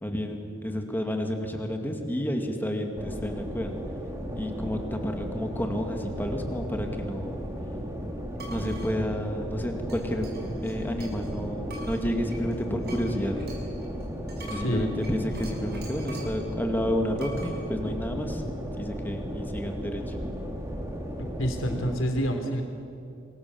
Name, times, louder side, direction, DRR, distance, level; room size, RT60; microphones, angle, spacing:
voice 1, 0.0-3.7 4.4-7.4 8.5-10.4 10.6-13.4 14.4-18.4 18.8-20.2, equal, 10° left, 3 dB, 2.4 m, -30 dB
sound 1, 3.0-22.0, equal, 15° right, 2.7 m, -35 dB
sound 2, 8.4-8.9 9.9-11.3 11.7-16.4 17.2-17.6, right 2 dB, 50° right, 5.8 m, -45 dB
voice 2, 14.5-14.9 19.1-19.2 21.4-22.6, equal, 75° left, 4 dB, 3.7 m, -28 dB
26.5 x 23.0 x 7.2 m, 2.5 s
head